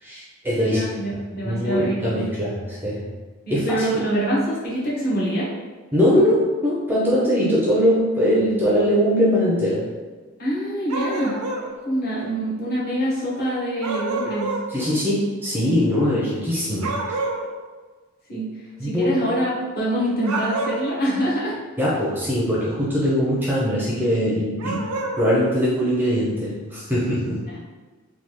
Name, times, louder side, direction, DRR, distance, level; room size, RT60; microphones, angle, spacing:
voice 1, 0.0-0.8 1.4-3.1 3.5-3.9 5.9-9.9 14.7-17.0 18.8-19.3 21.8-27.4, equal, 10° right, -7 dB, 0.4 m, -21 dB
voice 2, 0.6-2.2 3.5-5.5 10.4-11.3 11.6-14.5 18.3-18.5 18.8-21.6 27.5-27.7, right 1 dB, 45° left, -7 dB, 0.9 m, -25 dB
sound 1, 10.9-11.7 13.8-14.7 16.8-17.4 20.2-20.9 24.6-25.2, right 2 dB, 90° right, 0.5 m, -27 dB
3.3 x 2.3 x 2.9 m, 1.3 s
head